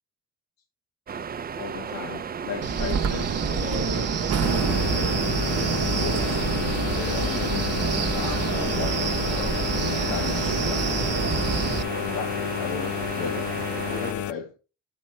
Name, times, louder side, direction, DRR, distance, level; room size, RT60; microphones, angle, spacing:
sound 1, 1.1-14.1, right 7 dB, 25° right, 0.4 m, -34 dB
voice 1, 1.5-6.4 6.9-11.3 11.9-13.5 13.9-14.5, left 7 dB, 75° left, 1.0 m, -36 dB
Wind, 2.6-11.8, right 6 dB, 45° right, 0.8 m, -26 dB
sound 2, 4.4-14.3, left 11 dB, 55° left, 0.5 m, -31 dB
7.6 x 3.1 x 4.3 m
supercardioid pair, 65°, 35 cm